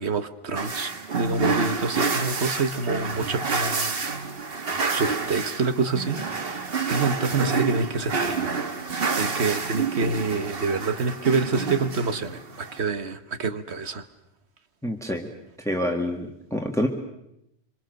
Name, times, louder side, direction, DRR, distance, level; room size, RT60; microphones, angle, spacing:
voice 1, 0.0-3.9 4.5-4.6 4.9-8.5 9.2-12.4 12.7-14.0, right 4 dB, 80° right, 10 dB, 1.7 m, -27 dB
sound 1, 0.6-12.8, right 4 dB, 65° right, 1.6 m, -28 dB
voice 2, 14.8-15.3 15.7-16.9, equal, 5° left, 3 dB, 1.9 m, -27 dB
26.5 x 26.0 x 6.7 m, 0.82 s
omnidirectional pair, 1.1 m